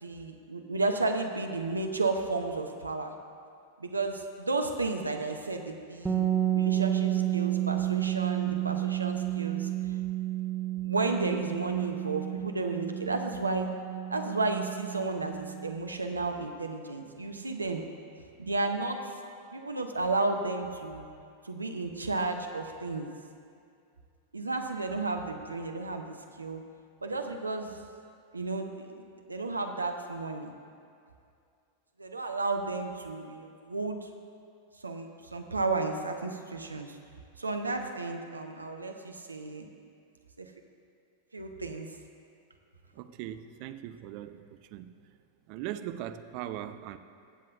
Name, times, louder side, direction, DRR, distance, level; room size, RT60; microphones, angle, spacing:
voice 1, 0.0-3.1 3.8-6.2 6.5-10.0 10.8-13.7 14.1-17.8 18.4-19.0 19.5-21.1 21.4-23.1 24.3-26.6 27.0-27.7 28.3-29.0 29.3-30.5 32.0-34.1 34.8-37.0 37.4-39.7 40.4-40.5 41.3-41.9, right 3 dB, 80° right, 5 dB, 0.8 m, -33 dB
sound 1, 6.0-15.8, right 13 dB, 15° right, 0.7 m, -31 dB
voice 2, 43.0-44.9 45.5-47.0, right 12 dB, 45° right, 10 dB, 0.5 m, -39 dB
20.5 x 7.5 x 2.6 m, 2.4 s
figure-of-eight pair, 90°, 0 cm